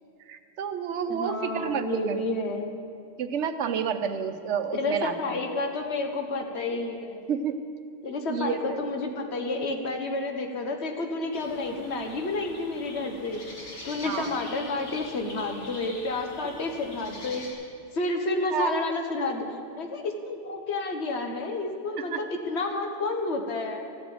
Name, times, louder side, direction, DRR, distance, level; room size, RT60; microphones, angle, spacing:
voice 1, 0.3-2.2 3.2-5.4 7.3-7.6 8.3-8.8 14.0-14.3 18.5-18.7 22.0-22.2, right 7 dB, 80° right, 10 dB, 1.0 m, -30 dB
voice 2, 1.1-2.7 4.7-7.2 8.0-13.5 13.8-17.5 17.9-19.4 19.8-23.8, left 2 dB, 70° left, 4 dB, 1.4 m, -30 dB
sound 1, 11.3-17.5, left 1 dB, 85° left, 2.4 m, -44 dB
13.5 x 8.0 x 7.8 m, 2.4 s
omnidirectional pair, 1.2 m